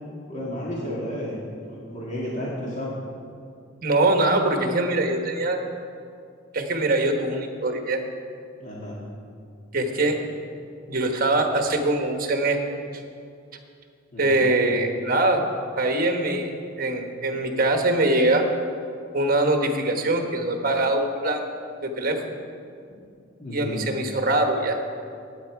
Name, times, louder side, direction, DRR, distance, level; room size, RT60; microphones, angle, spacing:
voice 1, 0.3-2.9 8.6-9.0 14.1-14.4 23.4-23.8, left 1 dB, 35° left, -5 dB, 1.9 m, -32 dB
voice 2, 3.8-5.6 6.5-8.0 9.7-10.2 10.9-12.8 14.2-15.4 15.8-16.5 16.8-18.5 19.1-21.4 21.8-22.4 23.5-24.8, right 2 dB, 45° right, 4 dB, 1.3 m, -23 dB
17.0 x 9.1 x 4.7 m, 2.4 s
head